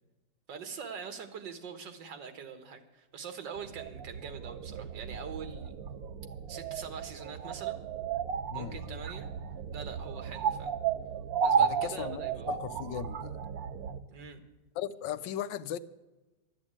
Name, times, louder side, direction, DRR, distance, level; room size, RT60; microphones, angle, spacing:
voice 1, 0.5-5.7 6.5-7.8 8.5-9.3 9.7-10.7 11.4-12.6 14.1-14.4, right 6 dB, 85° right, 2.0 m, -43 dB
sound 1, 3.6-14.0, right 7 dB, 65° right, 1.1 m, -34 dB
voice 2, 8.5-9.0 11.6-12.2 12.5-13.4 14.7-15.8, left 10 dB, 90° left, 1.3 m, -37 dB
12.0 x 9.7 x 8.6 m
omnidirectional pair, 1.9 m